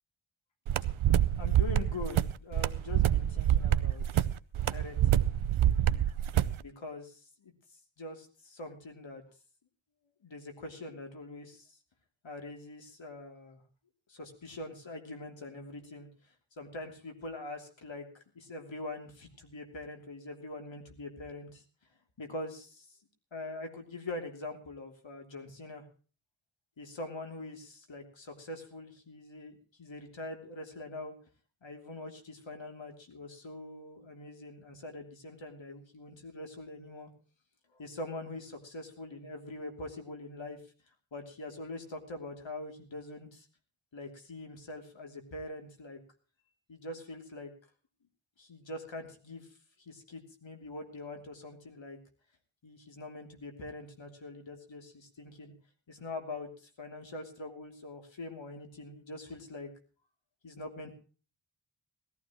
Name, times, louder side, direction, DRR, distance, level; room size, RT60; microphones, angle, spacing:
sound 1, 0.7-6.6, right 11 dB, 80° right, 0.7 m, -27 dB
voice 1, 1.4-4.3 4.7-6.0 6.6-7.5 8.0-9.2 10.2-11.8 12.2-13.6 14.1-16.1 16.6-21.6 22.2-22.9 23.3-25.8 26.8-31.1 31.6-37.1 37.7-40.6 41.1-43.4 43.9-46.0 46.7-47.5 48.4-49.5 49.8-52.0 52.6-55.5 55.9-59.7 60.4-60.9, left 2 dB, 65° left, 4 dB, 3.1 m, -43 dB
19.5 x 14.5 x 3.1 m, 0.37 s
wide cardioid pair, 95°, 48 cm